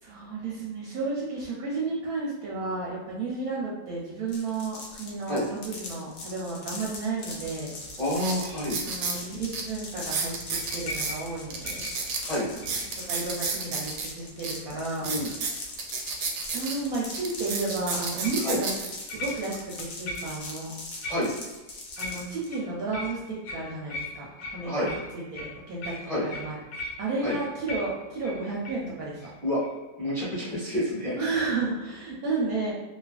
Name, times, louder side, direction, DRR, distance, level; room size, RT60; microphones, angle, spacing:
voice 1, 0.0-7.7 8.8-10.3 10.7-11.9 13.1-15.1 16.5-18.7 19.1-20.7 22.0-23.2 23.5-25.9 26.2-26.6 27.0-29.2 31.2-32.7, right 3 dB, 70° right, -4 dB, 1.0 m, -32 dB
sound 1, 4.3-22.5, left 3 dB, 65° left, 0.9 m, -41 dB
sound 2, 7.4-7.5 8.1-9.2 9.5-9.6 10.0-11.1 11.5-14.1 14.4-14.5 14.9-16.7 17.1-18.9 19.5-19.8, right 4 dB, 90° right, 1.2 m, -31 dB
voice 2, 8.0-8.8 12.2-12.5 15.0-15.3 18.4-18.6 21.1-21.3 24.6-24.9 26.0-26.2 27.2-27.4 29.4-29.6 30.0-31.2, left 1 dB, ahead, -8 dB, 0.8 m, -28 dB
sound 3, 10.6-13.1 13.6-14.0 18.2-18.5 19.1-19.7 20.1-20.5 21.0-21.6 22.0-28.9 29.2-29.3 29.6-29.8, left 2 dB, 90° left, 1.2 m, -39 dB
2.8 x 2.3 x 2.3 m, 1.1 s
omnidirectional pair, 1.8 m